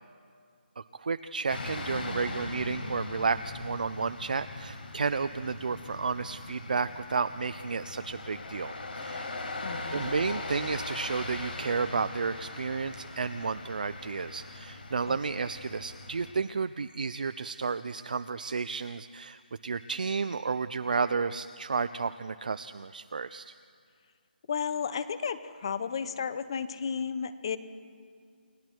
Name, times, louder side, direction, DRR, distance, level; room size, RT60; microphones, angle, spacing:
voice 1, 0.8-9.3 9.9-23.5, right 5 dB, 50° right, 11 dB, 0.6 m, -32 dB
sound 1, 1.5-16.3, left 2 dB, 65° left, 5.3 m, -40 dB
voice 2, 9.6-10.1 15.1-15.2 24.5-27.6, left 6 dB, 30° left, 14 dB, 0.9 m, -33 dB
29.5 x 22.5 x 4.6 m, 2.2 s
hypercardioid pair, 175°, 6 cm